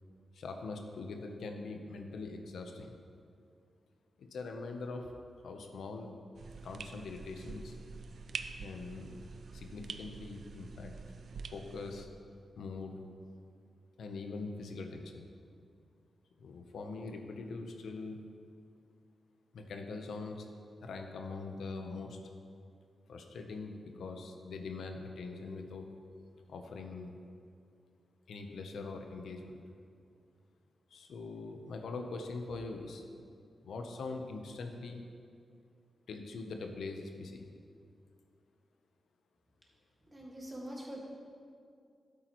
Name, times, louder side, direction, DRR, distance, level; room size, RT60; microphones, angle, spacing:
voice 1, 0.3-3.0 4.2-5.1 5.4-6.1 6.6-7.8 8.6-10.9 11.5-12.1 12.6-13.0 14.0-15.3 16.4-18.2 19.5-20.5 20.8-22.2 23.1-25.9 26.5-27.2 28.3-29.6 30.9-33.0 33.6-35.1 36.1-37.5, left 3 dB, 90° left, 4 dB, 0.8 m, -42 dB
sound 1, 6.3-12.1, right 5 dB, 65° right, 0.4 m, -46 dB
voice 2, 40.1-41.0, equal, 15° right, -3 dB, 1.9 m, -44 dB
12.0 x 8.6 x 3.1 m, 2.3 s
wide cardioid pair, 105°, 0 cm